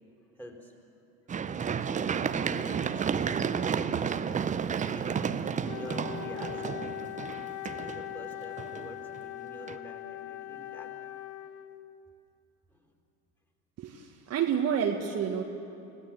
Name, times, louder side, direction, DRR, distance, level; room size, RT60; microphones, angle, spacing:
voice 1, 0.4-0.8 1.9-3.1 3.5-4.2 4.8-5.4 5.7-7.0 7.8-10.9 12.7-12.9, equal, 5° left, 2 dB, 4.2 m, -47 dB
Run, 1.3-9.2 9.7-9.8, right 7 dB, 15° right, 0.7 m, -31 dB
Wind instrument woodwind instrument, 5.6-12.0, left 14 dB, 40° left, 0.8 m, -40 dB
voice 2, 13.8-15.4, right 8 dB, 35° right, 2 dB, 1.7 m, -29 dB
29.5 x 17.0 x 7.8 m, 2.8 s
figure-of-eight pair, 75°, 45 cm